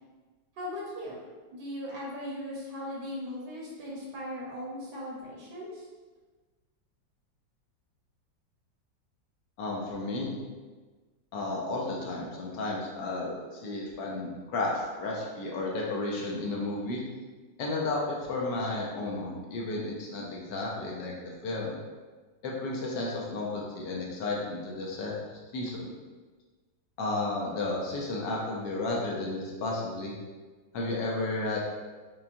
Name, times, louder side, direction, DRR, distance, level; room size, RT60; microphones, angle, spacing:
voice 1, 0.6-1.2 1.5-5.9, left 1 dB, 70° right, -4 dB, 1.4 m, -38 dB
voice 2, 9.6-10.4 11.3-17.0 17.6-21.8 22.4-25.1 25.5-25.9 27.0-30.1 30.7-31.6, left 2 dB, 70° left, -3 dB, 1.3 m, -33 dB
5.6 x 2.2 x 2.5 m, 1.4 s
omnidirectional pair, 2.0 m